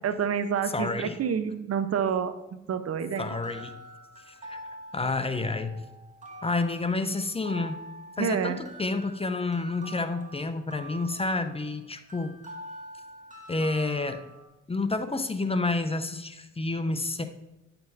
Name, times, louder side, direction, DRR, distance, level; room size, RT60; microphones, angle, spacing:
voice 1, 0.0-3.4 8.2-8.6, right 7 dB, 55° right, 11 dB, 0.9 m, -28 dB
voice 2, 0.7-1.2 3.2-3.7 4.3-4.6 4.9-5.8 6.4-7.8 8.2-12.3 13.5-14.2 14.7-17.2, left 3 dB, 20° left, 9 dB, 0.8 m, -29 dB
sound 1, 3.1-14.4, right 1 dB, 25° right, 2.1 m, -45 dB
10.5 x 6.9 x 4.1 m, 0.97 s
cardioid pair, 90°, 30 cm